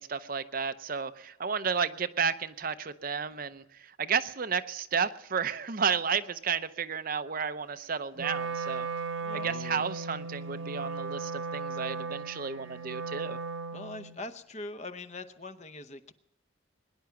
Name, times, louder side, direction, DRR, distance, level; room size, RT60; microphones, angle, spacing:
voice 1, 0.0-8.9 9.4-13.4, right 6 dB, 45° right, 11 dB, 0.6 m, -32 dB
Wind instrument woodwind instrument, 8.2-14.2, right 4 dB, 70° right, 1.1 m, -36 dB
voice 2, 9.2-9.8 13.7-16.1, left 2 dB, 35° left, 10 dB, 0.8 m, -42 dB
22.0 x 10.5 x 5.9 m, 0.82 s
head